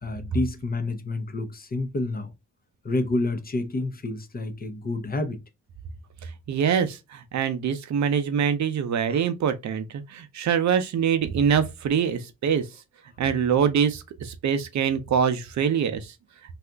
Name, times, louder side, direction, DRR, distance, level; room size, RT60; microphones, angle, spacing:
voice 1, 0.0-2.3 2.8-5.4 9.1-9.3, left 2 dB, 30° left, 0.7 m, -29 dB
voice 2, 6.2-12.6 13.2-16.1, right 7 dB, 60° right, 0.6 m, -24 dB
2.8 x 2.4 x 3.3 m
cardioid pair, 80°, 32 cm